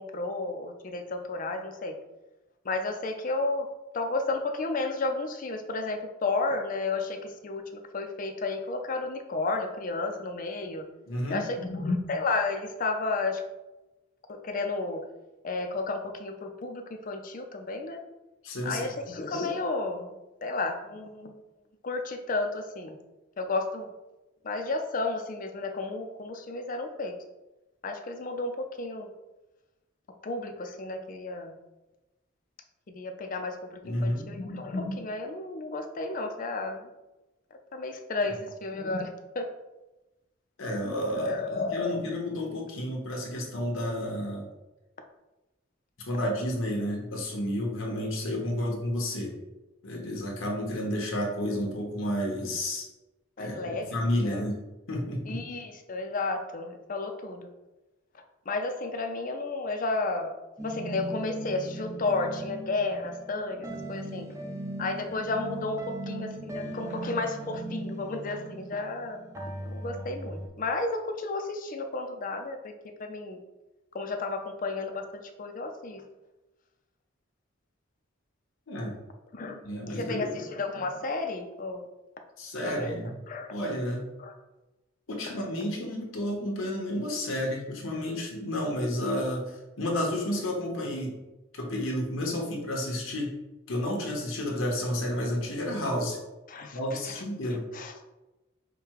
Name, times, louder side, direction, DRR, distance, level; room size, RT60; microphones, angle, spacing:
voice 1, 0.0-2.0 2.6-3.7 3.9-10.8 11.3-13.4 14.4-15.0 15.4-18.0 18.6-20.1 20.4-21.4 21.8-23.0 23.4-23.9 24.4-27.1 27.8-29.1 30.2-31.6 32.9-36.9 37.7-39.1 39.3-39.5 41.2-42.1 53.4-53.9 54.2-54.4 55.3-57.5 58.5-60.3 60.6-64.3 64.8-69.2 69.6-72.7 73.0-73.4 73.9-76.0 79.3-79.6 79.9-81.8 82.6-83.0 83.3-83.5 84.2-84.3 96.5-97.2 97.7-98.0, left 3 dB, 40° left, 5 dB, 0.5 m, -32 dB
voice 2, 11.0-11.4 18.4-18.8 33.8-34.3 40.6-41.3 41.7-44.5 46.0-49.3 49.8-52.9 53.4-54.6 54.9-55.4 78.7-79.0 79.6-80.4 82.4-83.2 83.5-84.0 85.1-91.2 91.5-93.3 93.7-96.2 96.7-97.6, left 1 dB, 85° left, 0 dB, 1.1 m, -31 dB
sound 1, 60.6-70.5, right 1 dB, 15° right, 0.5 m, -38 dB
5.0 x 2.2 x 4.6 m, 1.1 s
head